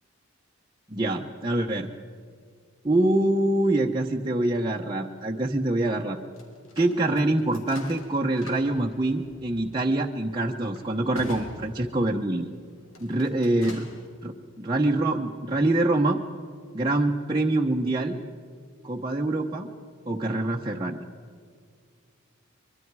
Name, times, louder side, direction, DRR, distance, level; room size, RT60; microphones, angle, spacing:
voice 1, 0.9-1.9 2.8-6.2 6.8-12.5 13.0-13.8 14.2-16.2 16.7-18.2 18.8-19.7 20.1-21.0, right 2 dB, 20° right, -1 dB, 0.9 m, -25 dB
sound 1, 6.4-12.4 12.9-14.1, left 1 dB, 75° left, 3.4 m, -45 dB
24.5 x 23.0 x 4.8 m, 2.1 s
head